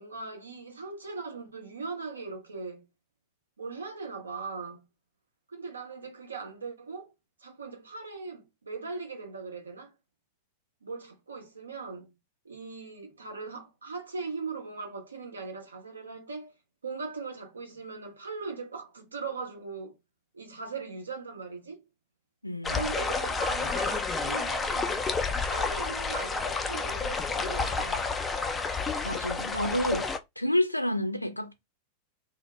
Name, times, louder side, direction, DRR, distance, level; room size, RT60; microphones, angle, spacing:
voice 1, 0.0-2.8 3.6-4.8 5.5-7.1 7.4-9.9 10.8-12.1 12.4-16.5 16.8-20.0 20.3-21.8 22.7-25.0 25.4-28.1, right 4 dB, 75° right, 0.7 m, -39 dB
voice 2, 22.4-22.8 29.0-30.1 30.4-31.5, left 1 dB, 90° left, 0.4 m, -29 dB
sound 1, 22.6-30.2, left 4 dB, 15° left, 0.4 m, -30 dB
2.1 x 2.1 x 3.0 m
figure-of-eight pair, 90°, 0 cm